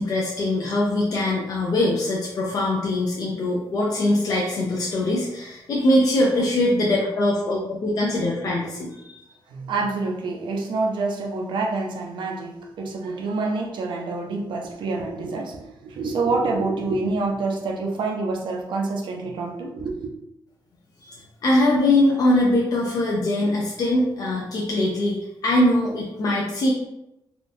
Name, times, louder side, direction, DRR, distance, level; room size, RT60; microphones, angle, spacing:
voice 1, 0.0-9.2 21.0-26.7, left 1 dB, 50° left, -4 dB, 0.4 m, -22 dB
voice 2, 9.5-20.1, right 3 dB, 80° right, 1 dB, 0.6 m, -27 dB
3.6 x 2.3 x 2.6 m, 0.88 s
wide cardioid pair, 170°, 8 cm